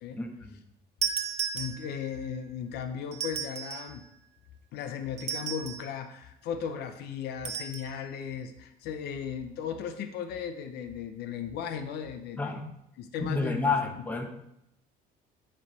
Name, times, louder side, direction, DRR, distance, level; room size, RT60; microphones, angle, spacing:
voice 1, 0.2-0.6 12.4-12.6 13.2-14.2, left 4 dB, 10° left, 3 dB, 0.9 m, -29 dB
sound 1, 1.0-2.2 3.1-4.0 5.2-5.9 7.4-7.9, right 8 dB, 40° right, 0.8 m, -34 dB
voice 2, 1.5-4.0 4.7-12.6 13.0-13.7, left 7 dB, 75° left, 7 dB, 0.6 m, -36 dB
9.7 x 3.3 x 4.0 m, 0.78 s
cardioid pair, 110°, 17 cm